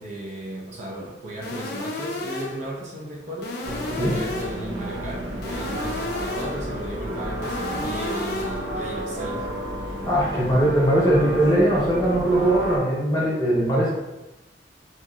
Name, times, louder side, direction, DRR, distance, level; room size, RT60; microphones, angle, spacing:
voice 1, 0.0-9.5, right 1 dB, 40° right, -4 dB, 0.5 m, -35 dB
sound 1, 1.4-2.7 3.4-4.7 5.4-6.7 7.4-8.7, left 2 dB, 55° left, 0.4 m, -32 dB
sound 2, 3.6-12.8, equal, 90° right, 0.6 m, -32 dB
voice 2, 10.1-13.9, right 1 dB, 20° left, -6 dB, 0.9 m, -20 dB
2.9 x 2.7 x 2.3 m, 1.0 s
head